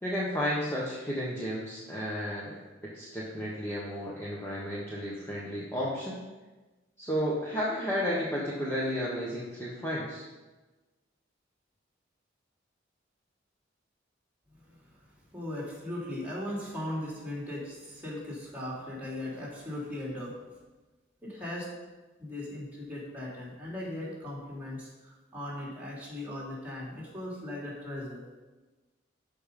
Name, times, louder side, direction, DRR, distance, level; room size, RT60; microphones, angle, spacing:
voice 1, 0.0-6.2 7.0-10.2, equal, 15° left, -6 dB, 1.3 m, -33 dB
voice 2, 14.6-14.9 15.3-20.3 21.2-21.7 22.2-28.2, left 1 dB, 10° right, -5 dB, 3.1 m, -38 dB
12.5 x 5.4 x 5.3 m, 1.2 s
head